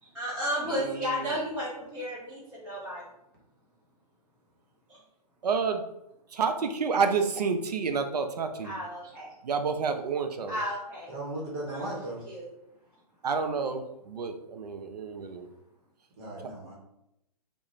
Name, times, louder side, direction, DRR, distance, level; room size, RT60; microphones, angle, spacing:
voice 1, 0.0-3.0 4.9-5.0 8.6-9.3 10.5-11.1 11.6-11.8 12.3-12.5, equal, 10° right, -11 dB, 0.5 m, -33 dB
voice 2, 0.7-1.4 5.4-5.8 6.3-8.7 9.4-10.6 13.2-15.5, right 5 dB, 75° right, 6 dB, 0.4 m, -29 dB
voice 3, 11.1-12.2 16.2-16.7, right 1 dB, 40° right, -3 dB, 0.9 m, -36 dB
2.4 x 2.2 x 3.0 m, 0.84 s
figure-of-eight pair, 130°, 21 cm